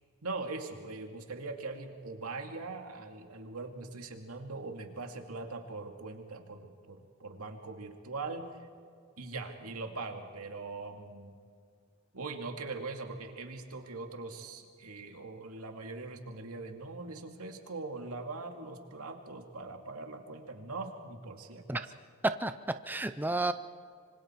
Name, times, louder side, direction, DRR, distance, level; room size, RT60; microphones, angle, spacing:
voice 1, 0.2-8.6 9.2-11.3 12.1-21.8, right 3 dB, 90° right, 4 dB, 2.3 m, -41 dB
voice 2, 22.2-23.5, right 2 dB, 10° right, 10 dB, 0.5 m, -31 dB
26.0 x 25.0 x 4.6 m, 2.2 s
head